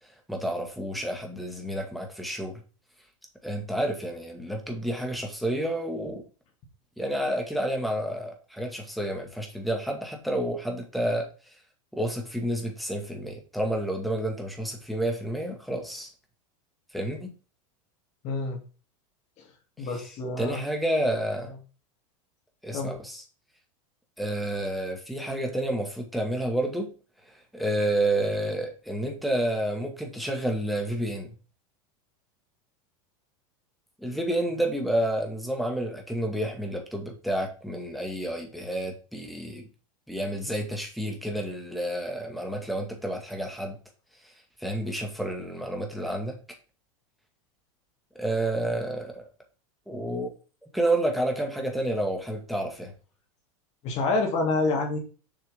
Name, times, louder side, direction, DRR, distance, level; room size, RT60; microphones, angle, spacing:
voice 1, 0.3-2.6 3.4-6.2 7.0-11.3 11.9-16.1 16.9-17.3 19.9-20.1 20.4-21.5 22.6-23.2 24.2-27.0 27.5-31.3 34.0-39.7 40.1-43.8 44.6-46.4 48.2-49.3 49.9-50.3 50.7-52.9, right 1 dB, ahead, 2 dB, 1.9 m, -30 dB
voice 2, 18.2-18.6 19.8-20.6 22.7-22.9 53.8-55.0, left 3 dB, 40° left, 2 dB, 2.9 m, -27 dB
7.0 x 6.2 x 3.6 m, 0.35 s
supercardioid pair, 135°, 18 cm